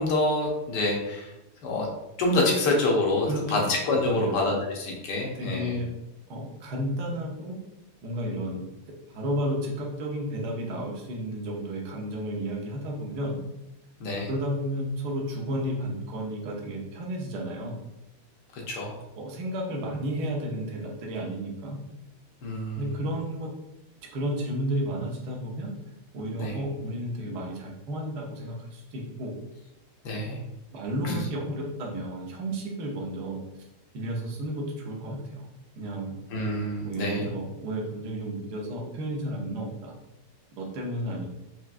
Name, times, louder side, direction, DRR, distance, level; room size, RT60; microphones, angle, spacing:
voice 1, 0.0-1.3 1.6-1.9 2.2-5.8 14.0-14.3 18.5-18.9 22.4-22.8 26.4-26.6 30.0-30.4 31.0-31.2 36.3-37.3, left 2 dB, 65° left, -1 dB, 1.3 m, -27 dB
voice 2, 3.3-3.7 4.0-4.4 5.3-5.9 6.3-7.6 8.0-8.6 9.1-13.4 14.3-17.8 19.2-21.8 22.8-23.5 24.0-25.7 26.1-29.4 30.7-33.4 33.9-35.5 35.8-36.2 36.8-39.9 40.5-41.2, right 1 dB, 60° right, -1 dB, 1.2 m, -32 dB
4.7 x 3.2 x 2.5 m, 0.96 s
omnidirectional pair, 2.3 m